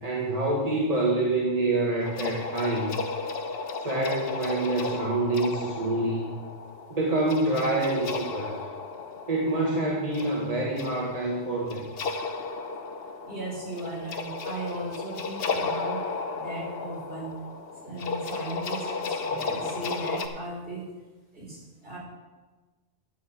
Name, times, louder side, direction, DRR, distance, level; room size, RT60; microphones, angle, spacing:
voice 1, 0.0-2.9 3.8-6.3 6.9-8.6 9.3-11.8, right 2 dB, 30° right, -4 dB, 1.5 m, -26 dB
sound 1, 2.0-20.3, left 4 dB, 55° left, 1.0 m, -34 dB
voice 2, 13.3-17.3 17.7-20.9 21.3-22.0, right 1 dB, 50° right, -4 dB, 3.7 m, -37 dB
11.0 x 5.5 x 7.4 m, 1.3 s
omnidirectional pair, 1.2 m